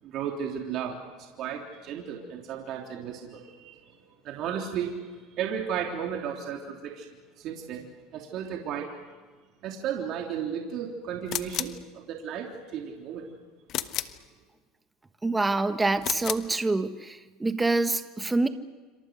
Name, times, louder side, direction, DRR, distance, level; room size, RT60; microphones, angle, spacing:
voice 1, 0.0-7.1 7.4-8.9 9.6-13.3 13.9-14.2, right 8 dB, 55° right, 1 dB, 3.4 m, -34 dB
sound 1, 11.3-11.8 13.7-14.2 16.0-16.5, left 12 dB, 55° left, 1.2 m, -32 dB
voice 2, 15.2-18.5, right 3 dB, 15° right, 9 dB, 1.3 m, -26 dB
27.5 x 26.0 x 6.5 m, 1.4 s
supercardioid pair, 110°, 0 cm